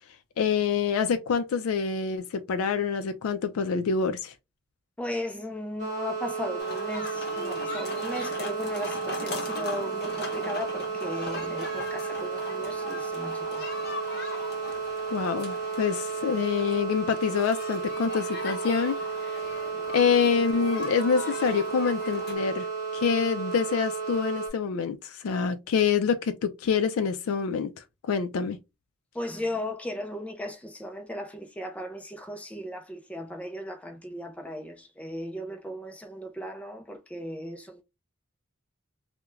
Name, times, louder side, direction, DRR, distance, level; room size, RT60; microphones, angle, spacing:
voice 1, 0.4-4.3 15.1-19.0 19.9-22.7 22.9-27.7 28.0-28.6, left 6 dB, 85° left, 0.3 m, -26 dB
voice 2, 5.0-13.7 29.1-37.8, left 1 dB, 5° left, 0.3 m, -36 dB
sound 1, 5.8-24.5, right 5 dB, 35° right, 1.0 m, -33 dB
sound 2, 6.6-22.4, left 2 dB, 50° left, 0.7 m, -39 dB
2.3 x 2.1 x 3.0 m
head